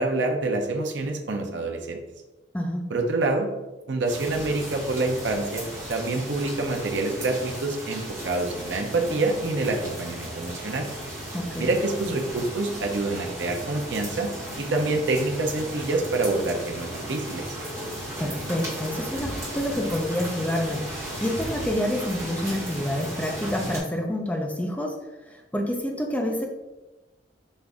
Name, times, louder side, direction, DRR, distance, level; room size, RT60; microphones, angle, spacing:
voice 1, 0.0-2.0 2.9-3.5 3.9-5.6 5.9-10.9 11.6-14.3 14.6-17.4, right 2 dB, 70° right, 2 dB, 0.7 m, -26 dB
sound 1, 4.0-23.8, right 1 dB, 15° right, 1.3 m, -35 dB
voice 2, 11.3-11.7 18.2-20.8 21.2-25.0 25.3-26.5, left 1 dB, 10° left, 1 dB, 0.5 m, -28 dB
5.3 x 2.5 x 3.5 m, 1.1 s
head